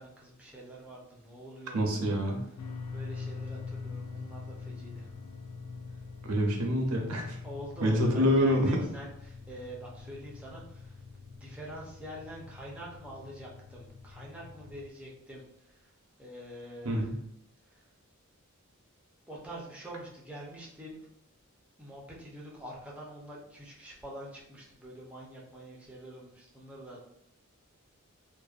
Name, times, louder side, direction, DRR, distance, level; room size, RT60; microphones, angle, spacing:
voice 1, 0.0-2.2 2.9-5.1 7.4-11.0 11.3-15.4 15.7-15.9 16.2-17.1 17.7-17.8 19.3-21.0 21.8-27.0, right 1 dB, 5° right, -4 dB, 0.5 m, -45 dB
voice 2, 1.7-2.4 6.2-7.4 7.8-8.7 16.8-17.1, equal, 85° right, 1 dB, 0.6 m, -26 dB
sound 1, 2.6-14.9, left 4 dB, 80° left, 0.3 m, -44 dB
2.6 x 2.1 x 2.3 m, 0.74 s
head